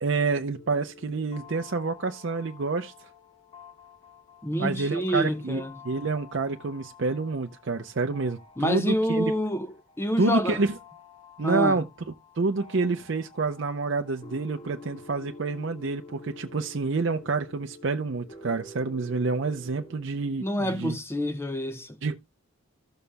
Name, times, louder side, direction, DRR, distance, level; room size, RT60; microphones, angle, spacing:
voice 1, 0.0-3.1 4.6-9.3 10.2-10.8 11.4-11.9 12.4-21.0 22.0-22.2, right 3 dB, 55° right, 0.6 m, -28 dB
sound 1, 0.5-20.0, left 3 dB, 30° left, 1.7 m, -49 dB
voice 2, 4.4-5.7 8.6-10.6 11.4-11.8 20.4-22.0, equal, 10° left, 0.8 m, -27 dB
15.5 x 6.9 x 2.2 m
head